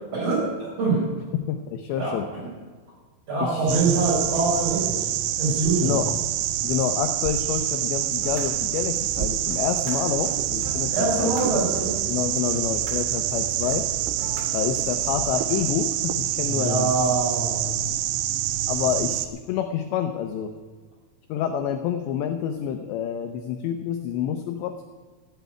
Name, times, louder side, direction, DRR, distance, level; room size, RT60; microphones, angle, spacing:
voice 1, 0.1-1.0 1.9-2.5 3.3-5.1 5.4-6.0 10.9-12.0 16.5-17.8, right 3 dB, 30° right, -6 dB, 7.1 m, -24 dB
voice 2, 1.5-2.3 3.4-3.7 5.8-6.1 6.6-11.6 12.1-13.9 14.5-17.1 18.7-20.5 21.3-24.8, left 9 dB, 85° left, 7 dB, 2.5 m, -28 dB
sound 1, 3.7-19.3, right 12 dB, 85° right, 3.3 m, -26 dB
sound 2, 8.2-9.2 9.5-15.7, right 1 dB, 60° right, 4.3 m, -39 dB
14.5 x 8.0 x 9.1 m, 1.5 s
omnidirectional pair, 6.0 m